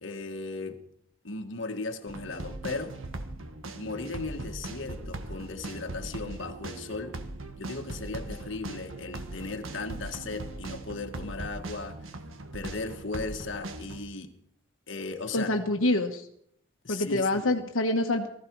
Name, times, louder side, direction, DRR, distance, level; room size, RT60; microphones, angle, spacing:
voice 1, 0.0-0.8 1.2-3.0 3.7-7.2 7.6-12.0 12.5-14.3 14.9-15.5 16.8-17.5, left 3 dB, 65° left, 1.6 m, -37 dB
sound 1, 2.1-14.0, right 2 dB, 80° right, 1.6 m, -39 dB
voice 2, 15.3-16.3 16.9-18.3, left 2 dB, 80° left, 1.3 m, -26 dB
19.0 x 14.5 x 4.7 m
head